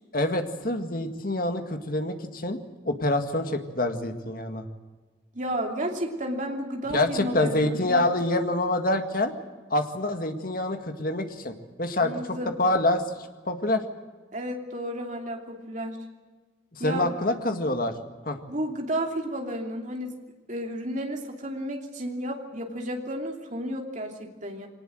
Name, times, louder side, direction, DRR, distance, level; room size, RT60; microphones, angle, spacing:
voice 1, 0.1-2.6 2.9-4.6 6.9-9.3 9.7-13.0 13.5-13.8 16.7-17.9 18.2-18.4, left 1 dB, 45° left, 6 dB, 1.9 m, -26 dB
voice 2, 5.3-8.0 12.0-12.5 14.3-16.0 16.8-17.1 18.5-20.1 20.5-24.7, equal, 40° right, 2 dB, 3.0 m, -32 dB
23.0 x 19.0 x 7.8 m, 1.4 s
head